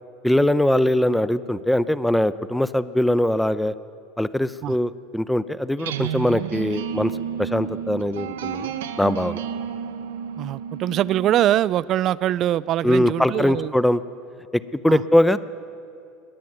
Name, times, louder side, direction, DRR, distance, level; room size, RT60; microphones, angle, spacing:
voice 1, 0.2-3.7 4.2-7.1 7.4-8.7 9.0-9.4 12.8-14.0 14.5-15.4, left 1 dB, 5° left, 14 dB, 0.6 m, -21 dB
sound 1, 5.8-11.7, right 9 dB, 75° right, 0.7 m, -31 dB
voice 2, 10.4-13.7 14.9-15.0, right 12 dB, 50° right, 20 dB, 0.3 m, -23 dB
21.0 x 8.4 x 7.9 m, 2.5 s
hypercardioid pair, 80°, 0 cm